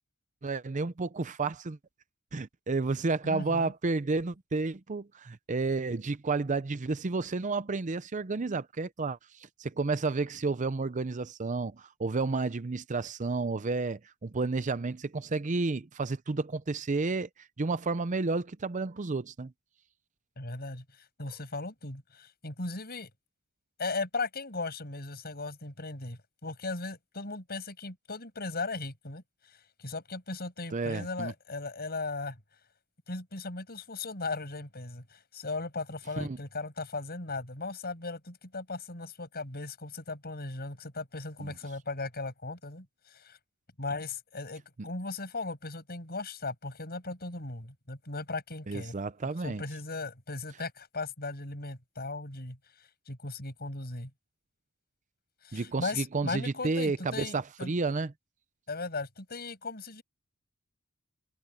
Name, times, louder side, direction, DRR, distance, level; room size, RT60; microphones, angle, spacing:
voice 1, 0.4-1.8 2.3-17.3 17.6-19.5 30.7-31.3 36.2-36.4 41.4-41.5 48.7-49.6 55.5-58.1, right 3 dB, 35° right, 0.6 m, -31 dB
voice 2, 3.2-3.7 20.4-23.1 23.8-32.4 33.1-43.4 43.8-49.0 49.4-52.6 53.1-54.1 55.4-57.7 58.7-60.0, left 3 dB, 45° left, 7.0 m, -37 dB
head